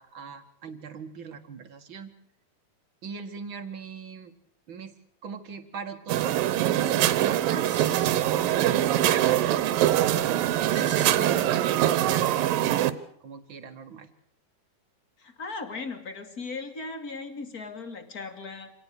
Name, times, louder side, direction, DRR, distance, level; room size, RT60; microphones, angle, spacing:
voice 1, 0.0-2.1 3.0-4.3 4.7-4.9 5.2-8.1 8.9-9.6 10.2-12.9 13.2-14.1, right 6 dB, 45° right, 8 dB, 1.6 m, -40 dB
sound 1, 6.1-12.9, right 12 dB, 75° right, 2.6 m, -23 dB
sound 2, 7.5-11.5, right 4 dB, 25° right, 1.6 m, -47 dB
voice 2, 15.2-18.7, left 4 dB, 30° left, 8 dB, 2.3 m, -37 dB
27.0 x 18.0 x 6.7 m, 0.66 s
omnidirectional pair, 4.3 m